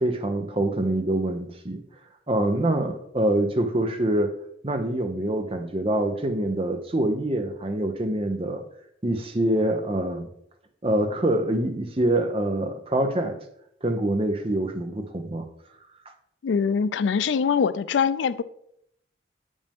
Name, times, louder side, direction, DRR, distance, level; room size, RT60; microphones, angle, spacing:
voice 1, 0.0-1.8 2.3-4.3 4.6-8.6 9.0-10.3 10.8-13.4 13.8-15.4, right 1 dB, 30° right, 0.7 m, -25 dB
voice 2, 16.4-18.4, left 6 dB, 85° left, 0.4 m, -23 dB
8.8 x 5.2 x 3.5 m
head